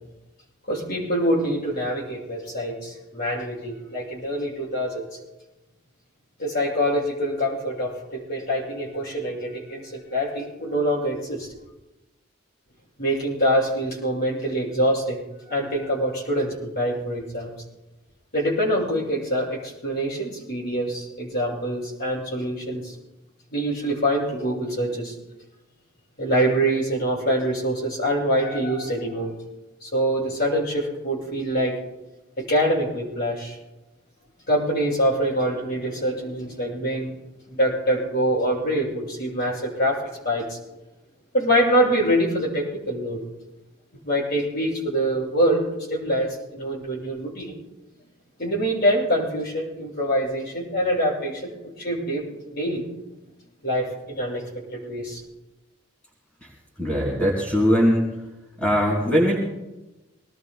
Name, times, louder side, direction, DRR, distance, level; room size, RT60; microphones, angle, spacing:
voice 1, 0.7-5.2 6.4-11.5 13.0-15.2 15.5-17.5 18.3-22.9 23.5-25.1 26.2-29.3 29.8-31.8 32.4-33.6 34.5-37.1 37.5-40.6 41.3-43.2 44.0-47.6 48.4-52.8 53.6-54.4 54.7-55.2, equal, 50° left, -5 dB, 6.9 m, -25 dB
voice 2, 56.8-58.1 58.6-59.4, equal, 5° left, -4 dB, 3.7 m, -20 dB
25.5 x 19.5 x 2.2 m, 1.0 s
head